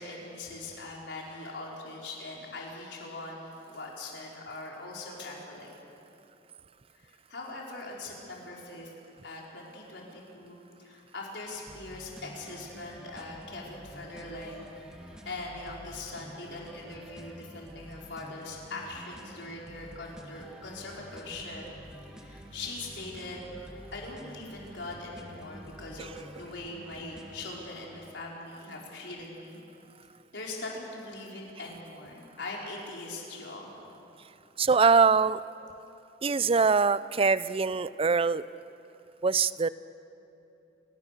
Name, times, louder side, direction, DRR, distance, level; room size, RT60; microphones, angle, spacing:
voice 1, 0.0-5.7 6.9-8.9 9.2-21.7 22.2-29.6 30.3-33.7, left 2 dB, 75° left, -3 dB, 5.0 m, -41 dB
sound 1, 11.6-27.6, equal, 5° right, 1.9 m, -49 dB
voice 2, 34.6-35.4 36.2-38.4 39.2-39.7, right 5 dB, 30° right, 16 dB, 0.5 m, -23 dB
29.5 x 18.0 x 6.8 m, 2.8 s
head